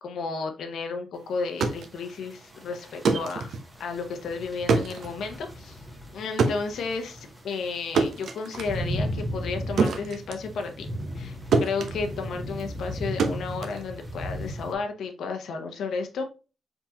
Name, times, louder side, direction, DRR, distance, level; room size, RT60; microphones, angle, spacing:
voice 1, 0.0-5.8 6.1-10.9 11.1-16.2, left 4 dB, 75° left, 5 dB, 0.7 m, -33 dB
sound 1, 1.4-11.3 11.5-14.5, right 4 dB, 65° right, 0.8 m, -29 dB
sound 2, 1.6-14.7, equal, 5° right, 0.9 m, -36 dB
4.7 x 3.8 x 2.8 m, 0.32 s
wide cardioid pair, 175°, 0 cm